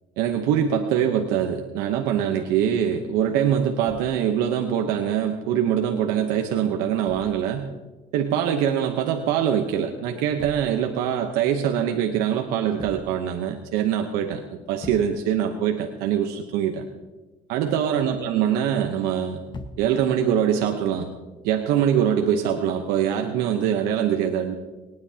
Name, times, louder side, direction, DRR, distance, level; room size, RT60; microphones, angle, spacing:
voice 1, 0.2-7.7 8.1-16.8 17.5-19.4 19.8-21.1 21.4-24.6, right 9 dB, 85° right, 4 dB, 0.9 m, -23 dB
sound 1, 3.9-4.5 7.1-7.7 10.1-11.0 12.7-13.4 13.8-13.9 14.3-14.4 14.8-15.5 19.5-20.2 21.3-21.5, left 2 dB, 30° left, 1.2 m, -42 dB
23.5 x 9.7 x 2.8 m, 1.2 s
supercardioid pair, 80°, 16 cm